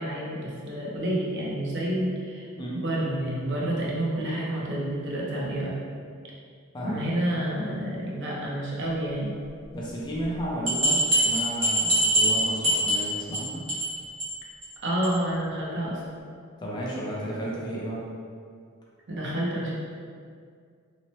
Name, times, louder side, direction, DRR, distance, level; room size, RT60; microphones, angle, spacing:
voice 1, 0.0-5.8 6.8-9.3 14.8-16.0 19.1-19.7, right 1 dB, 55° right, -5 dB, 0.6 m, -29 dB
voice 2, 9.7-13.6 16.6-18.0, right 1 dB, 20° left, -5 dB, 0.4 m, -33 dB
sound 1, 10.2-10.3 10.7-13.4 13.7-13.9 14.2-14.3 14.6-14.7 15.0-15.1, right 1 dB, 70° right, 1.0 m, -23 dB
2.7 x 2.1 x 2.9 m, 2.2 s
head